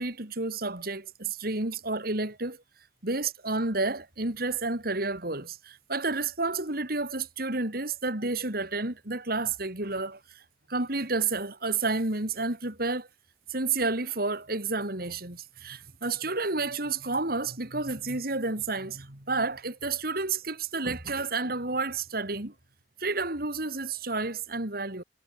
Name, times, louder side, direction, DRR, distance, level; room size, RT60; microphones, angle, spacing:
voice 1, 0.0-2.6 3.0-10.4 10.7-13.1 13.5-22.5 23.0-25.0, right 3 dB, 60° right, 3.7 m, -30 dB
head